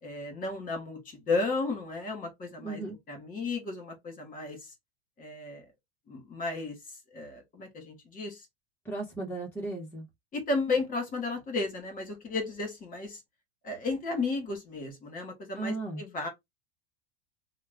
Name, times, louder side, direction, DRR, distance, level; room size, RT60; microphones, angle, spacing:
voice 1, 0.0-2.8 3.1-4.7 5.2-5.6 6.1-8.5 10.3-13.2 13.6-16.3, left 3 dB, 25° left, 1.6 m, -34 dB
voice 2, 2.6-3.0 8.8-10.0 15.5-16.0, right 3 dB, 10° left, 1.2 m, -35 dB
3.0 x 2.3 x 3.6 m
supercardioid pair, 135°, 31 cm